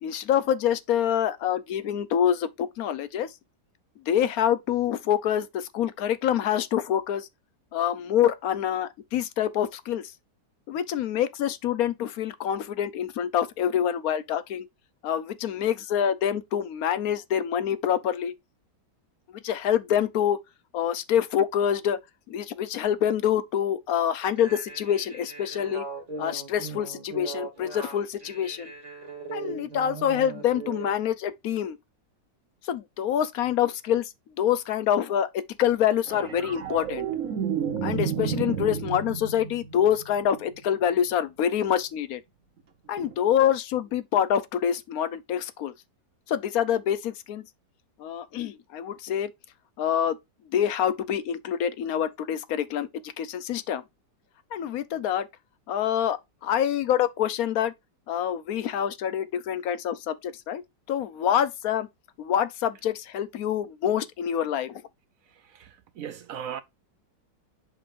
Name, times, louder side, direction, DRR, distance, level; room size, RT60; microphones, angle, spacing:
voice 1, 0.0-3.3 4.1-7.3 7.7-10.1 10.7-14.7 15.0-18.3 19.3-20.4 20.7-22.0 22.3-25.8 26.2-28.7 29.3-31.8 32.7-34.1 34.4-35.3 35.6-37.1 37.8-42.2 42.9-45.7 46.3-47.4 48.0-49.3 49.8-50.2 50.5-53.8 54.5-55.3 55.7-56.2 56.4-57.7 58.1-60.6 60.9-61.9 62.2-64.8, left 9 dB, 65° left, 1.0 m, -26 dB
sound 1, 24.3-31.0, right 4 dB, 20° right, 2.1 m, -39 dB
sound 2, 36.1-40.6 43.0-43.1, right 7 dB, 50° right, 1.3 m, -31 dB
voice 2, 65.5-66.6, right 9 dB, 70° right, 0.8 m, -37 dB
7.6 x 5.2 x 2.5 m
omnidirectional pair, 1.9 m